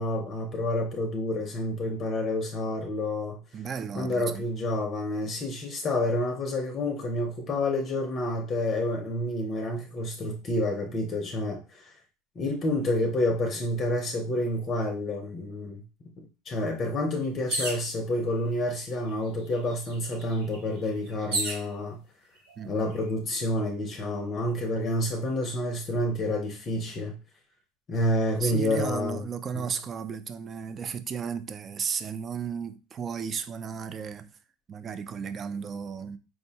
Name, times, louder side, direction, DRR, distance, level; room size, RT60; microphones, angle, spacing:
voice 1, 0.0-3.4 4.0-11.9 12.4-15.8 16.5-22.0 22.6-27.2 27.9-29.2, left 1 dB, 30° left, 0.5 m, -29 dB
voice 2, 3.5-4.4 22.6-22.9 28.4-34.3 34.7-36.2, right 6 dB, 30° right, 0.3 m, -34 dB
sound 1, 17.5-17.9 18.9-19.0 19.3-21.7 22.4-22.9, right 2 dB, 85° right, 1.7 m, -32 dB
4.4 x 2.1 x 2.7 m
supercardioid pair, 130°, 0 cm